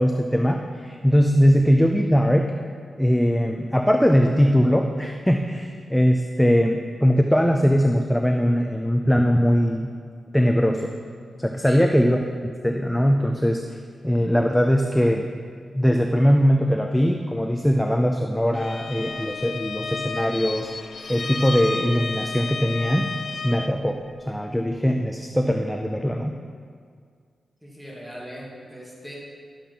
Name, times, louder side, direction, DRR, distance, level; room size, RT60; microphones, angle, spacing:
voice 1, 0.0-2.5 3.0-9.9 10.3-10.9 11.4-12.2 12.4-13.6 14.0-15.3 15.7-20.7 21.1-23.1 23.4-24.0 24.3-26.3, equal, 5° left, 4 dB, 0.5 m, -20 dB
Bowed string instrument, 18.5-23.8, left 4 dB, 50° left, 0.6 m, -32 dB
voice 2, 27.6-29.1, equal, 10° right, -4 dB, 2.7 m, -39 dB
10.5 x 7.1 x 5.4 m, 2.1 s
cardioid pair, 85°, 0 cm